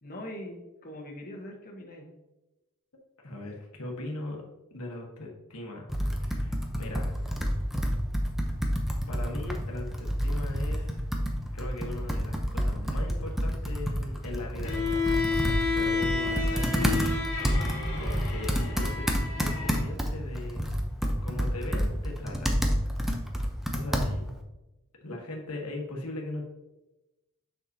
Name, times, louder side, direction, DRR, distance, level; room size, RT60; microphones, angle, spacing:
voice 1, 0.0-2.1, left 1 dB, 40° left, 0 dB, 1.3 m, -42 dB
voice 2, 3.2-4.4 4.7-5.9 6.2-7.1 9.1-11.0 11.5-15.1 15.7-17.1 18.0-20.6 21.2-22.6 23.7-24.4 25.0-26.4, left 1 dB, 85° left, 0 dB, 1.4 m, -39 dB
Computer keyboard, 5.9-24.4, equal, ahead, 0.7 m, -29 dB
Bowed string instrument, 14.6-19.9, left 4 dB, 70° left, 1.4 m, -31 dB
7.1 x 5.9 x 2.8 m, 1.0 s
head